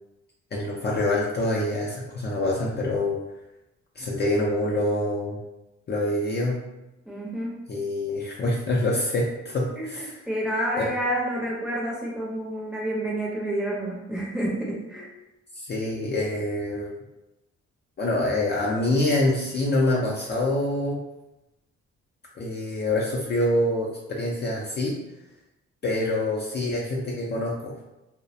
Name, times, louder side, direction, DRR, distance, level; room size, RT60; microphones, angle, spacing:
voice 1, 0.5-3.2 4.0-5.4 5.9-6.6 7.7-10.2 10.7-11.0 15.6-16.9 18.0-21.0 22.4-25.0 25.8-27.8, left 1 dB, 35° left, -4 dB, 0.4 m, -26 dB
voice 2, 7.1-7.6 9.8-9.9 10.3-15.1, right 1 dB, 5° right, -4 dB, 0.6 m, -29 dB
2.3 x 2.1 x 2.6 m, 0.96 s
cardioid pair, 90°, 30 cm